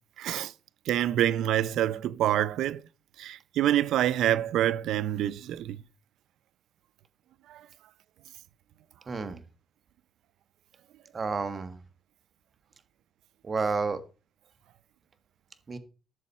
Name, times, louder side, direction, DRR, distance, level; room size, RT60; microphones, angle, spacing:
voice 1, 0.2-0.5 0.9-2.8 3.2-5.8 7.5-7.6, right 12 dB, 80° right, 0.5 m, -26 dB
voice 2, 9.1-9.4 11.1-11.8 13.4-14.0 15.7-15.8, right 4 dB, 35° right, 1.6 m, -30 dB
13.0 x 7.1 x 4.2 m
cardioid pair, 90°, 0 cm